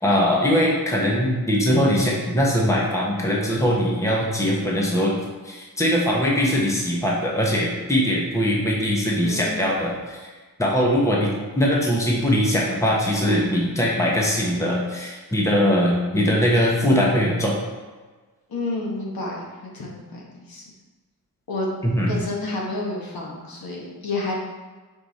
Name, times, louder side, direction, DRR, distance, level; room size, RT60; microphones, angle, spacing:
voice 1, 0.0-5.1 5.4-9.9 10.6-17.6 21.8-22.1, equal, 10° left, -3 dB, 1.0 m, -21 dB
voice 2, 9.2-9.7 18.5-20.6 21.5-21.7 22.1-24.4, left 2 dB, 70° left, -2 dB, 1.4 m, -30 dB
5.3 x 4.8 x 4.1 m, 1.3 s
wide cardioid pair, 145°, 37 cm